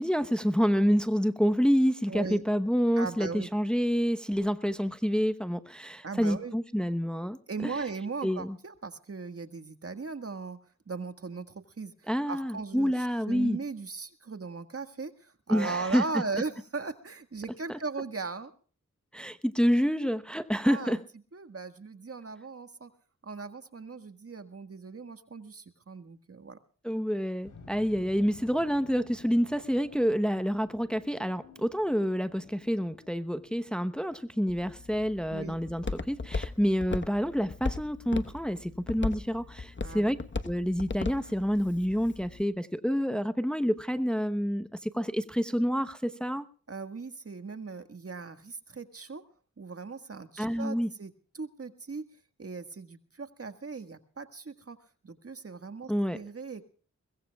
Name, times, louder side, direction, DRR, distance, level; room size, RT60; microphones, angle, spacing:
voice 1, 0.0-7.7 8.2-8.6 12.1-13.6 15.5-16.0 17.7-17.8 19.1-21.0 26.8-40.2 40.4-46.5 50.4-50.9 55.9-56.2, equal, 5° left, 1.0 m, -28 dB
voice 2, 2.1-2.4 3.0-3.5 6.0-6.5 7.5-10.6 10.9-11.9 12.3-18.5 20.6-21.0 21.3-22.9 23.2-26.6 35.3-35.6 39.8-40.1 46.7-49.2 49.6-52.0 52.4-54.8 55.0-56.6, right 4 dB, 50° right, 1.7 m, -38 dB
sound 1, 27.4-36.4, left 4 dB, 80° left, 3.9 m, -55 dB
Walk footsteps, 34.5-42.4, left 3 dB, 40° left, 1.2 m, -37 dB
23.0 x 21.0 x 2.4 m
cardioid pair, 55°, 29 cm